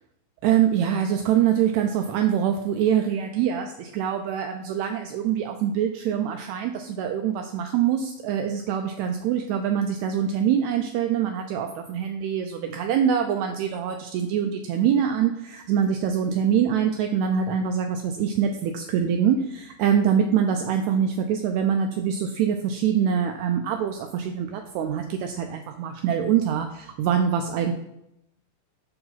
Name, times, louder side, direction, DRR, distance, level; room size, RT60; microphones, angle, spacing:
voice 1, 0.4-27.7, right 8 dB, 85° right, 5 dB, 1.6 m, -24 dB
7.5 x 4.6 x 5.8 m, 0.82 s
omnidirectional pair, 3.8 m